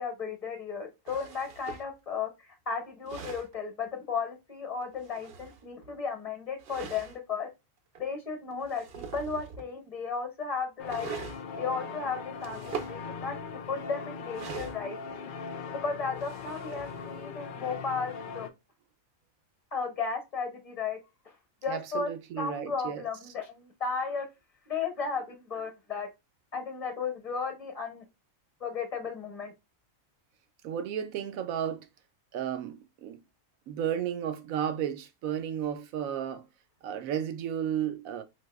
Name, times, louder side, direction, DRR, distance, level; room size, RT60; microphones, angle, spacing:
voice 1, 0.0-7.5 8.0-11.1 11.6-13.4 13.7-15.0 15.8-18.5 19.7-21.0 21.2-21.3 21.6-22.1 22.4-24.3 24.7-26.1 26.5-28.0 28.6-29.5, left 5 dB, 30° left, 0.9 m, -34 dB
sound 1, 1.1-1.9 2.8-3.6 4.8-5.9 6.6-7.2 7.9-8.0 8.5-9.7 10.8-11.4 12.4-13.0 14.3-15.1 16.0-17.3, right 6 dB, 55° right, 0.7 m, -42 dB
sound 2, 10.8-18.5, left 5 dB, 85° left, 0.4 m, -40 dB
voice 2, 21.7-23.0 30.6-31.9 32.3-33.2 33.7-36.5 36.8-38.2, right 9 dB, 80° right, 1.0 m, -33 dB
4.1 x 2.7 x 2.2 m
omnidirectional pair, 1.5 m